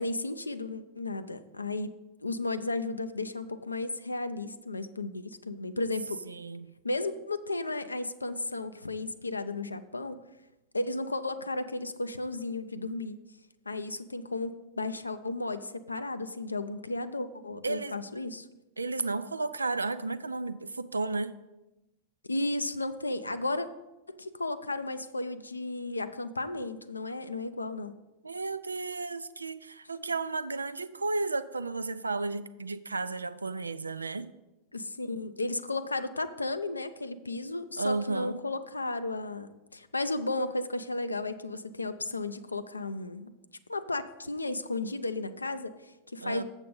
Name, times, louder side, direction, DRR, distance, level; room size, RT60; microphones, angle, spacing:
voice 1, 0.0-1.9 2.2-6.2 6.8-10.2 10.7-13.2 13.7-18.5 22.2-23.7 24.1-27.9 34.7-43.3 43.7-46.4, left 2 dB, 80° left, 12 dB, 0.5 m, -34 dB
voice 2, 6.3-6.7 17.6-18.0 18.8-21.4 28.2-34.3 37.8-38.4 46.2-46.4, right 3 dB, 80° right, 14 dB, 0.4 m, -33 dB
7.5 x 7.1 x 5.4 m, 1.0 s
figure-of-eight pair, 90°, 0 cm